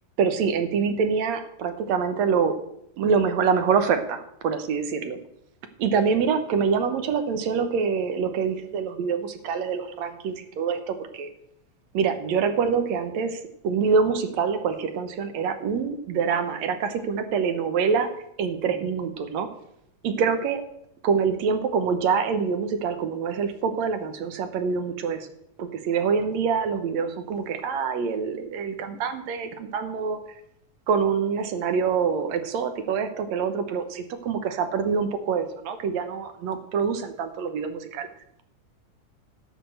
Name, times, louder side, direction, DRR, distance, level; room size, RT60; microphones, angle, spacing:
voice 1, 0.2-2.6 3.0-5.2 5.8-11.3 11.9-18.1 18.4-19.5 20.0-20.7 21.0-25.3 25.6-30.2 30.9-38.1, right 6 dB, 70° right, 9 dB, 2.1 m, -25 dB
12.5 x 5.2 x 7.7 m, 0.76 s
omnidirectional pair, 3.5 m